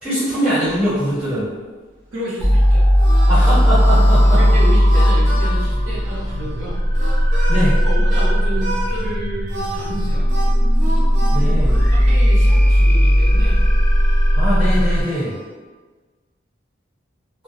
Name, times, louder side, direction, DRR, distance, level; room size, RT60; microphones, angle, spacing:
voice 1, 0.0-1.5 3.3-4.4 7.5-7.7 11.3-11.8 14.3-15.3, equal, 5° right, -12 dB, 1.3 m, -21 dB
voice 2, 2.1-2.8 3.9-4.1 4.4-6.8 7.5-10.3 11.4-11.5 11.9-13.6, right 1 dB, 80° right, -6 dB, 0.7 m, -31 dB
sound 1, 2.4-15.0, equal, 10° left, 0.5 m, -15 dB
Harmonica, 2.5-8.3 8.6-9.1 9.5-15.5, right 1 dB, 40° right, 0.5 m, -33 dB
2.3 x 2.0 x 2.8 m, 1.3 s
head